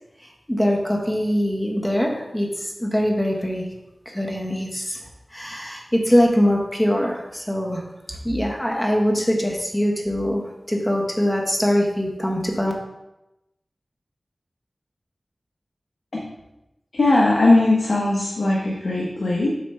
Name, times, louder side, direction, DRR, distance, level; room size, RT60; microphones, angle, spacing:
voice 1, 0.2-3.7 4.0-5.0 5.3-7.8 8.1-12.7, equal, 10° left, -1 dB, 1.4 m, -22 dB
voice 2, 16.9-19.5, left 2 dB, 90° left, -4 dB, 1.1 m, -19 dB
8.0 x 3.2 x 5.6 m, 0.93 s
wide cardioid pair, 70°, 0 cm